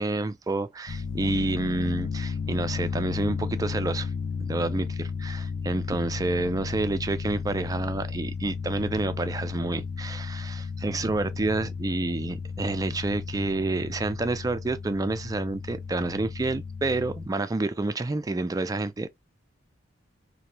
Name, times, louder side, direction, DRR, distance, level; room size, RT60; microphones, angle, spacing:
voice 1, 0.0-4.1 4.4-19.1, right 2 dB, 20° right, 0.3 m, -29 dB
sound 1, 0.9-17.3, left 5 dB, 65° left, 0.5 m, -33 dB
3.0 x 2.2 x 2.5 m
head